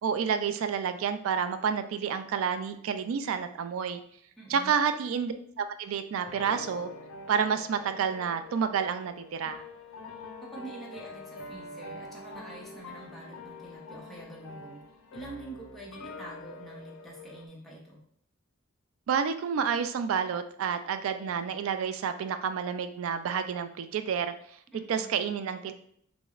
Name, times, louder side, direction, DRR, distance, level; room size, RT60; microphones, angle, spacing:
voice 1, 0.0-4.0 4.5-6.9 7.3-9.6 19.1-24.3 24.9-25.7, right 7 dB, 75° right, 9 dB, 0.3 m, -29 dB
voice 2, 4.4-4.8 10.4-14.8 15.1-18.0 24.7-25.2, right 2 dB, ahead, -5 dB, 0.7 m, -46 dB
sound 1, 6.2-17.5, left 3 dB, 85° left, 0.5 m, -45 dB
6.0 x 2.1 x 2.4 m, 0.64 s
head